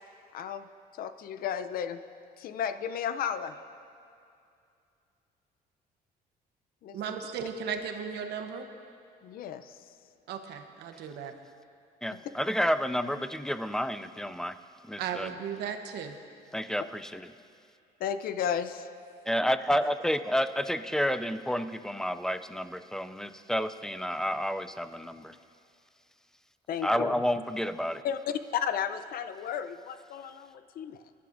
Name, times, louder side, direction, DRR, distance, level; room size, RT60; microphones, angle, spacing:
voice 1, 0.3-0.7 1.0-2.0 2.4-3.5 6.8-7.0 9.2-9.8 18.0-18.9 26.7-27.2 28.0-28.2 28.5-31.0, left 8 dB, 60° left, 11 dB, 0.6 m, -33 dB
voice 2, 6.9-8.7 10.3-11.3 15.0-16.2, right 7 dB, 80° right, 6 dB, 1.0 m, -36 dB
voice 3, 12.0-14.6 14.8-15.3 16.5-17.3 19.2-25.4 26.8-28.0, equal, 5° left, 12 dB, 0.4 m, -30 dB
22.5 x 11.0 x 2.6 m, 2.5 s
cardioid pair, 110°, 17 cm